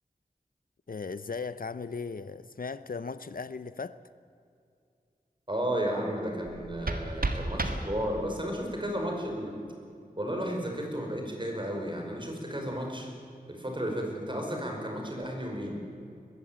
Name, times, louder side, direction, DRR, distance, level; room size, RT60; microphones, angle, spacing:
voice 1, 0.9-4.0, left 4 dB, 65° left, 0.7 m, -37 dB
voice 2, 5.5-9.6 10.2-13.1 13.5-15.8, equal, 30° right, 5.4 m, -33 dB
sound 1, 6.4-8.4, right 2 dB, 65° right, 1.8 m, -33 dB
21.0 x 15.5 x 8.8 m
wide cardioid pair, 55°, 16 cm